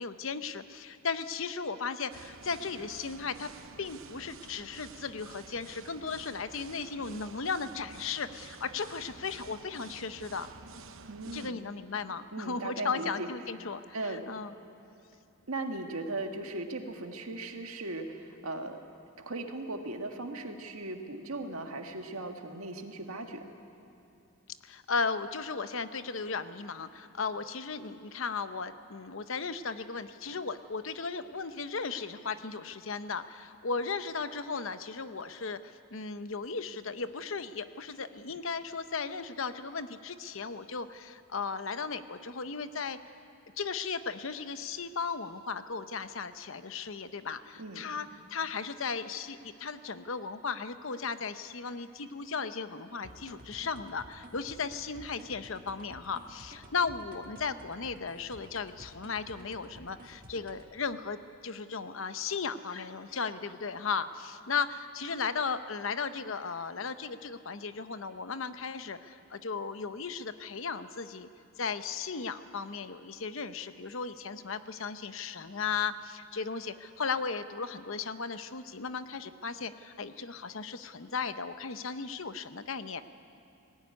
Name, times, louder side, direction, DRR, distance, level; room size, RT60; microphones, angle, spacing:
voice 1, 0.0-3.5 3.8-10.5 11.3-14.6 24.6-43.0 43.6-61.2 61.4-71.3 71.6-83.0, left 5 dB, 65° left, 11 dB, 0.8 m, -36 dB
sound 1, 2.1-11.5, right 4 dB, 65° right, 0.9 m, -50 dB
voice 2, 11.1-11.6 12.3-13.3 13.9-14.2 15.5-18.8 19.2-23.5 47.6-47.9, right 2 dB, 85° right, 4 dB, 1.8 m, -38 dB
sound 2, 53.0-60.7, right 1 dB, 40° right, 1.7 m, -52 dB
19.0 x 17.0 x 9.6 m, 2.7 s
head